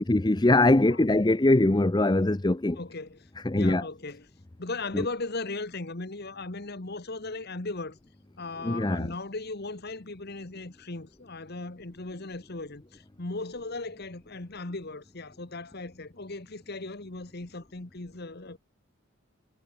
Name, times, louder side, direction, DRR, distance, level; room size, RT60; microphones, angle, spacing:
voice 1, 0.0-2.8 3.4-3.9 4.9-5.1 8.6-9.1, left 2 dB, 20° left, 0.6 m, -22 dB
voice 2, 2.8-3.2 3.5-4.2 4.6-8.0 8.4-18.6, left 3 dB, 45° left, 1.4 m, -37 dB
head